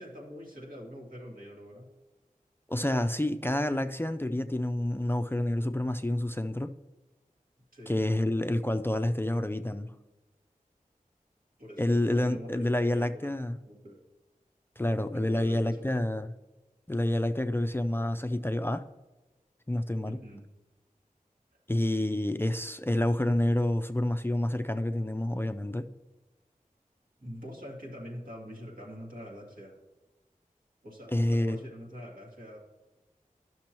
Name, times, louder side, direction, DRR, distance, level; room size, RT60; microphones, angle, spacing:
voice 1, 0.0-1.9 7.7-8.0 11.6-13.4 13.7-14.0 15.1-16.0 20.1-20.4 27.2-29.8 30.8-32.6, equal, 75° right, -3 dB, 2.0 m, -44 dB
voice 2, 2.7-6.7 7.9-9.9 11.8-13.6 14.8-16.3 16.9-18.8 19.7-20.2 21.7-25.9 31.1-31.6, left 1 dB, 15° left, 8 dB, 0.4 m, -28 dB
11.5 x 6.1 x 3.0 m, 1.1 s
wide cardioid pair, 50°, 14 cm